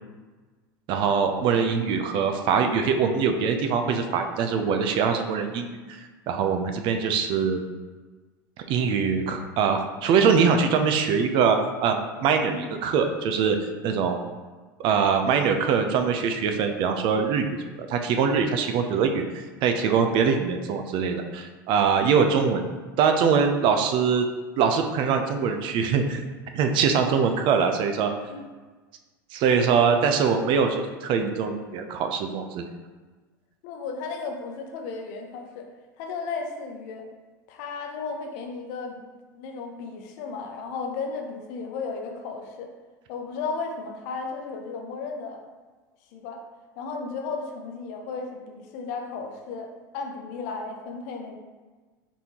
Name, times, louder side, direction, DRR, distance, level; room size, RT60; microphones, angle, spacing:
voice 1, 0.9-6.0 6.3-7.6 8.7-13.6 13.8-14.2 14.8-17.5 17.7-19.2 19.6-22.6 23.0-24.3 24.6-26.2 26.5-28.1 29.3-32.7, right 6 dB, 55° right, 5 dB, 0.5 m, -23 dB
voice 2, 1.6-2.0 12.5-12.7 21.8-22.1 28.3-28.4 33.6-35.6 36.0-37.0 37.5-39.1 39.3-42.7 43.1-45.4 46.1-46.4 46.8-51.4, left 4 dB, 65° left, 3 dB, 0.7 m, -34 dB
4.2 x 3.5 x 2.9 m, 1.3 s
hypercardioid pair, 85°, 10 cm